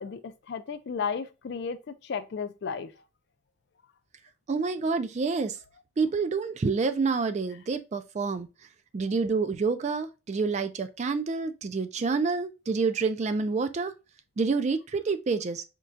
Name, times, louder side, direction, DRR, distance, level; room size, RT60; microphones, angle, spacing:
voice 1, 0.0-2.9, left 6 dB, 55° left, 0.4 m, -34 dB
voice 2, 4.5-5.6 6.0-8.5 8.9-13.9 14.4-15.6, right 4 dB, 35° right, 0.3 m, -28 dB
4.4 x 2.3 x 2.5 m
head